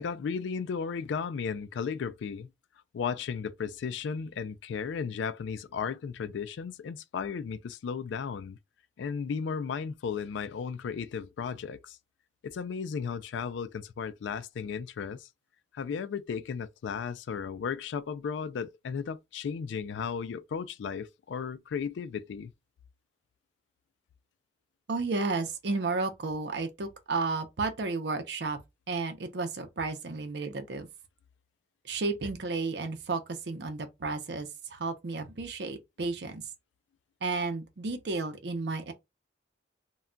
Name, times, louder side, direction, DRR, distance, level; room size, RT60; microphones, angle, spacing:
voice 1, 0.0-2.5 2.9-8.6 9.0-12.0 12.4-15.3 15.7-22.5, left 6 dB, 80° left, 0.3 m, -35 dB
voice 2, 24.9-28.6 28.9-30.9 31.8-36.4 37.2-38.9, right 3 dB, 65° right, 0.6 m, -32 dB
2.2 x 2.2 x 3.7 m
head